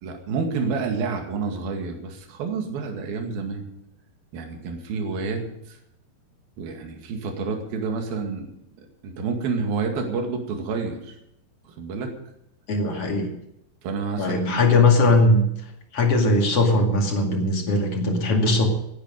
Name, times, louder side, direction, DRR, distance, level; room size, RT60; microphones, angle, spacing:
voice 1, 0.0-3.7 4.3-5.8 6.6-8.5 8.8-11.2 11.7-12.1 12.9-13.0 13.8-14.7, right 4 dB, 55° right, 3 dB, 3.7 m, -29 dB
voice 2, 12.7-13.3 14.2-15.4 15.9-18.7, left 2 dB, 40° left, 2 dB, 2.2 m, -19 dB
19.0 x 10.0 x 5.2 m, 0.81 s
omnidirectional pair, 5.6 m